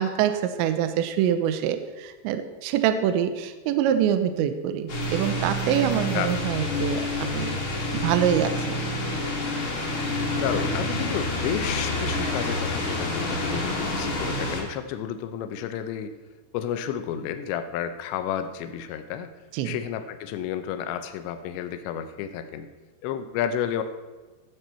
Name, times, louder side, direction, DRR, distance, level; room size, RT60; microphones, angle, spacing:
voice 1, 0.0-7.6 7.9-8.8 13.5-13.7 19.5-19.8, right 9 dB, 85° right, 9 dB, 2.7 m, -25 dB
sound 1, 4.9-14.6, left 1 dB, 50° left, 1.6 m, -28 dB
voice 2, 6.1-6.6 10.3-16.1 16.5-19.3 19.6-22.7 23.0-23.8, left 9 dB, 80° left, 9 dB, 2.6 m, -31 dB
18.5 x 6.9 x 4.4 m, 1.2 s
omnidirectional pair, 5.9 m